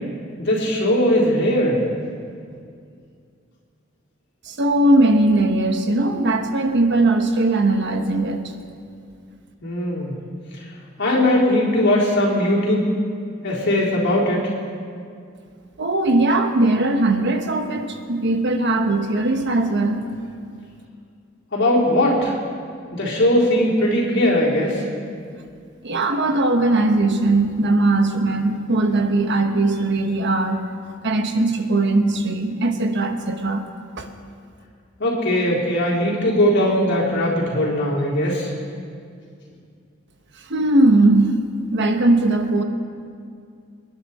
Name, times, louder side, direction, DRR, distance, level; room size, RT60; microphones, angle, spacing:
voice 1, 0.4-1.8 9.6-10.2 10.5-10.7 11.0-12.8 13.4-14.5 21.5-22.3 22.9-24.8 35.0-38.5, left 1 dB, 60° left, -4 dB, 3.6 m, -19 dB
voice 2, 4.5-8.5 15.8-20.1 25.8-30.6 31.0-33.6 34.0-34.1 40.5-41.3 41.7-42.6, right 2 dB, 60° right, 6 dB, 1.2 m, -19 dB
27.0 x 10.5 x 4.3 m, 2.3 s
head